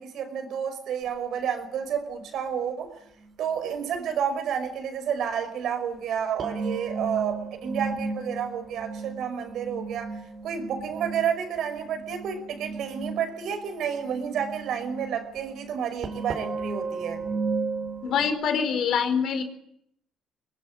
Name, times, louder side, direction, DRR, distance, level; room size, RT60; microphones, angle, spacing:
voice 1, 0.0-2.9 3.4-10.1 10.4-17.2, right 8 dB, 70° right, 8 dB, 5.6 m, -30 dB
sound 1, 1.0-1.1 3.2-3.3 6.4-18.3, right 4 dB, 45° right, 4.5 m, -35 dB
voice 2, 18.0-19.4, left 7 dB, 65° left, 8 dB, 4.5 m, -25 dB
23.0 x 20.5 x 9.9 m, 0.77 s
cardioid pair, 100°, 0 cm